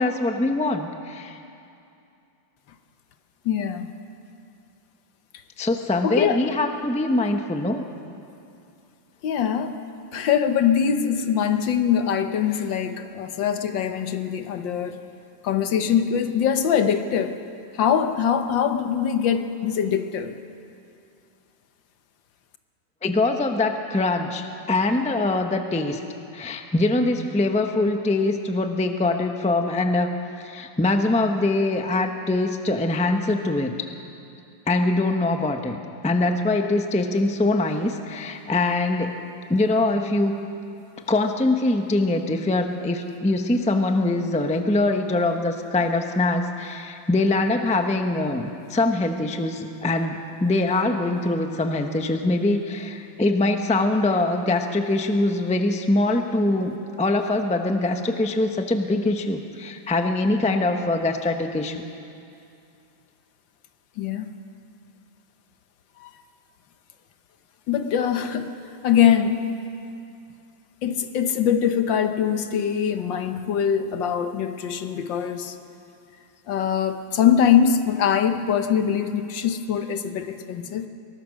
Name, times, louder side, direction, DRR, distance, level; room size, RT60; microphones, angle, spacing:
voice 1, 0.0-1.4 5.6-7.8 23.0-26.0 26.3-30.1 30.4-33.9 34.7-39.2 39.5-40.4 41.1-61.8, left 2 dB, 5° left, 5 dB, 0.5 m, -23 dB
voice 2, 3.4-3.9 6.0-6.4 9.2-9.8 10.1-15.0 15.4-17.4 17.7-20.4 64.0-64.3 66.0-66.1 67.7-68.5 68.8-69.5 70.8-75.5 76.5-80.9, left 8 dB, 75° left, 8 dB, 1.7 m, -22 dB
22.5 x 18.0 x 6.4 m, 2.6 s
omnidirectional pair, 2.1 m